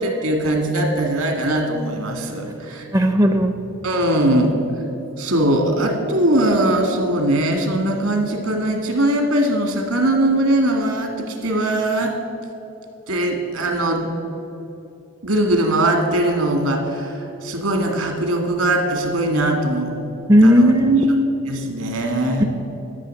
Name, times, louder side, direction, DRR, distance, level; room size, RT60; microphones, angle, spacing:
voice 1, 0.0-3.0 3.8-4.5 5.2-12.2 13.1-14.1 15.2-19.9 20.4-20.7 21.5-22.5, right 1 dB, 75° right, 3 dB, 2.0 m, -20 dB
voice 2, 2.9-3.6 20.3-21.0 22.4-22.5, equal, 15° right, 6 dB, 0.4 m, -14 dB
12.5 x 7.1 x 7.6 m, 3.0 s
head